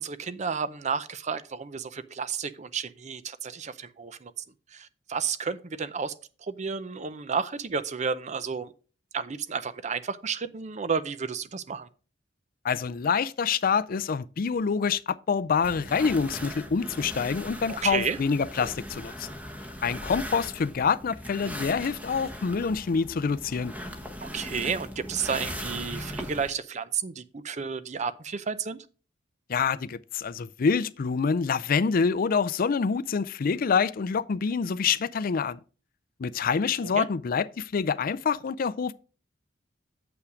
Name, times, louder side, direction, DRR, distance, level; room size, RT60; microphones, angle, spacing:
voice 1, 0.0-4.3 4.7-6.1 6.5-8.7 9.1-11.9 17.7-18.2 24.2-28.8 36.9-37.1, right 6 dB, 40° right, 0.6 m, -31 dB
voice 2, 12.6-19.3 19.8-23.7 29.5-35.6 36.2-38.9, left 5 dB, 50° left, 0.4 m, -26 dB
sound 1, 15.6-26.5, equal, 10° right, 1.1 m, -39 dB
8.0 x 5.7 x 5.0 m
head